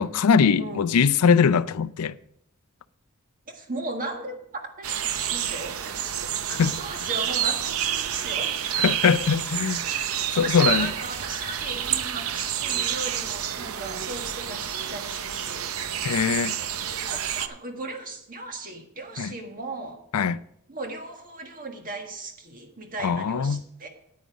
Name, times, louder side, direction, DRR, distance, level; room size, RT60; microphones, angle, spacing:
voice 1, 0.0-2.1 6.5-6.8 8.8-9.8 10.3-10.9 16.0-16.6 19.2-19.3 20.1-20.4 23.0-23.6, left 6 dB, 85° left, 0.4 m, -21 dB
voice 2, 0.6-0.9 3.5-6.3 6.7-8.6 10.4-15.7 16.6-20.0 20.7-23.9, right 2 dB, 40° right, 1.7 m, -37 dB
sound 1, 4.8-17.5, right 9 dB, 70° right, 0.7 m, -29 dB
9.7 x 9.2 x 5.0 m
head